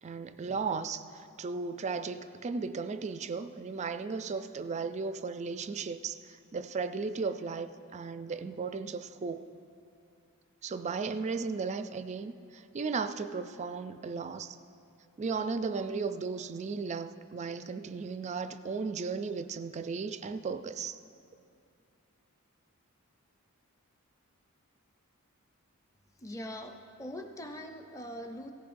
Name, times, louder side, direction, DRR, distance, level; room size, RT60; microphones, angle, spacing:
voice 1, 0.0-9.4 10.6-14.6 15.2-21.0, right 4 dB, 30° right, 11 dB, 0.3 m, -35 dB
voice 2, 26.2-28.5, equal, 15° left, 4 dB, 0.6 m, -42 dB
17.0 x 14.5 x 2.6 m, 2.6 s
head